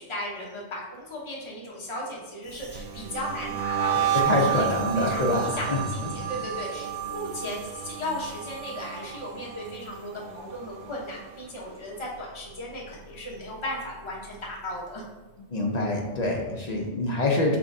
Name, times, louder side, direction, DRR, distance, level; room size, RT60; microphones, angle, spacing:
voice 1, 0.0-15.0, left 1 dB, 25° left, -3 dB, 0.9 m, -36 dB
sound 1, 2.5-11.6 11.9-12.3 12.7-14.2, right 10 dB, 65° right, 0.8 m, -32 dB
voice 2, 3.9-6.1 15.5-17.6, left 2 dB, 50° left, 0 dB, 0.5 m, -26 dB
5.8 x 3.5 x 2.6 m, 1.2 s
omnidirectional pair, 1.2 m